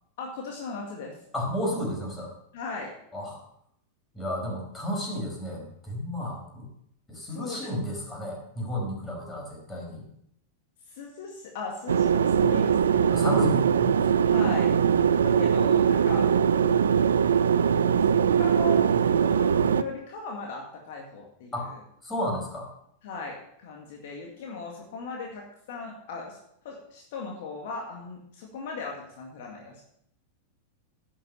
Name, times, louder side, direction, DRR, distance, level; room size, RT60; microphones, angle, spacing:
voice 1, 0.2-1.2 2.5-2.9 7.3-7.7 10.9-13.1 14.3-14.7 15.2-16.3 17.5-21.8 23.0-26.4 26.6-29.8, left 4 dB, 55° left, 0 dB, 2.0 m, -38 dB
voice 2, 1.3-2.3 3.1-3.4 4.1-6.7 7.1-10.1 13.1-14.1 15.1-15.3 21.5-21.7 22.0-22.7, equal, 15° left, -1 dB, 5.3 m, -32 dB
sound 1, 11.9-19.8, right 7 dB, 75° right, 0.4 m, -21 dB
11.0 x 8.6 x 5.5 m, 0.73 s
figure-of-eight pair, 95°, 0 cm